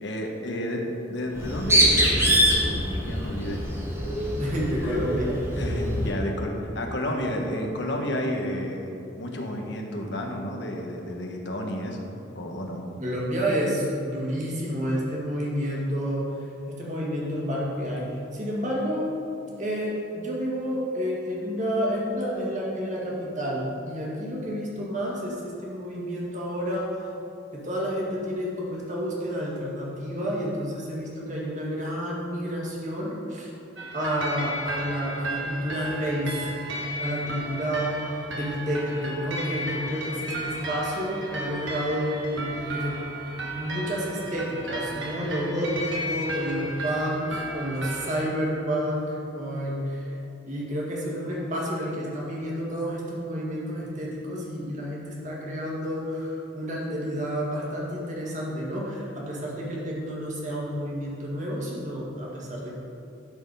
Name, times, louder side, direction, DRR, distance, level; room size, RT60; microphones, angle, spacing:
voice 1, 0.0-3.6 4.8-5.0 5.6-12.1 12.3-12.8, equal, 60° left, 1 dB, 1.2 m, -31 dB
Bird, 1.3-6.2, equal, 15° right, 1.4 m, -24 dB
voice 2, 4.4-5.4 13.0-16.3 16.7-19.1 19.6-26.9 27.5-33.5 33.9-43.2 43.5-50.2 50.5-62.7, equal, 40° right, -4 dB, 1.9 m, -30 dB
sound 1, 33.8-48.2, right 1 dB, 65° right, 1.4 m, -34 dB
12.5 x 4.6 x 5.4 m, 2.8 s
head